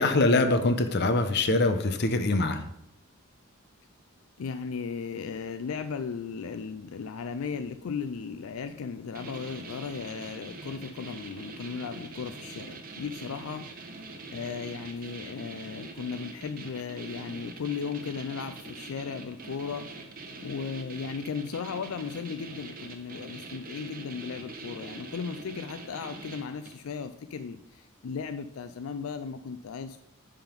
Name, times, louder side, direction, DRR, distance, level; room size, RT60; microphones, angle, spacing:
voice 1, 0.0-2.6, left 2 dB, 55° left, 8 dB, 0.8 m, -24 dB
voice 2, 4.4-13.7 14.3-19.9 20.4-30.0, left 5 dB, 80° left, 9 dB, 0.4 m, -36 dB
sound 1, 9.1-26.9, right 3 dB, 45° right, 1.0 m, -44 dB
10.5 x 3.8 x 5.2 m, 0.79 s
head